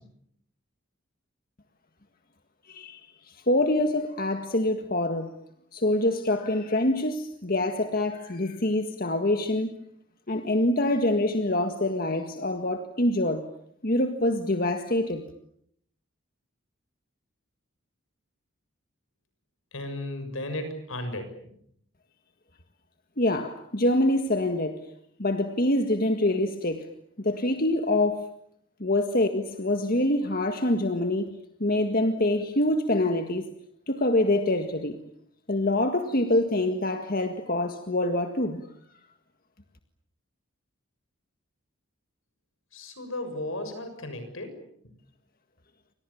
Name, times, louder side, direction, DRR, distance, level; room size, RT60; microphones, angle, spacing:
voice 1, 2.7-3.0 3.5-5.3 5.7-9.7 10.3-13.4 13.8-15.2 23.2-24.8 25.2-26.9 27.2-28.3 28.8-31.3 31.6-33.5 33.9-35.0 35.5-38.6, left 1 dB, 45° left, 1.8 m, -25 dB
voice 2, 19.7-21.3 42.7-44.6, left 1 dB, 75° left, 6.9 m, -35 dB
29.5 x 26.0 x 7.2 m
head